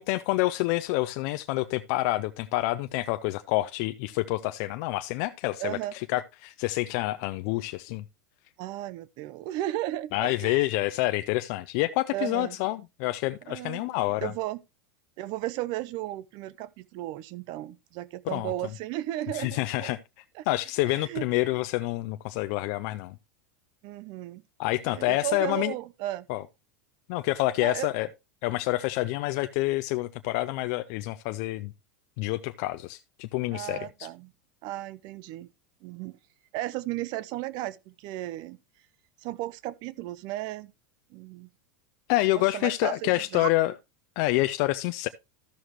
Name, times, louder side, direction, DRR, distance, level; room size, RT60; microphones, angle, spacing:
voice 1, 0.0-8.0 10.1-14.3 18.3-18.5 19.3-20.0 20.5-23.2 24.6-25.7 26.3-26.4 27.1-28.1 28.4-31.7 32.2-33.9 42.1-43.7 44.2-45.1, left 18 dB, 55° left, 0.5 m, -28 dB
voice 2, 5.6-5.9 8.6-10.7 12.1-12.6 13.5-13.8 14.2-14.6 15.2-19.9 20.3-20.5 20.8-21.3 23.8-24.4 24.9-26.3 27.6-27.9 33.5-34.3 34.6-35.5 35.8-36.2 36.5-38.6 39.2-40.7 41.1-41.5 42.3-43.5, right 15 dB, 50° right, 0.4 m, -35 dB
13.0 x 6.4 x 3.0 m
supercardioid pair, 125°, 10 cm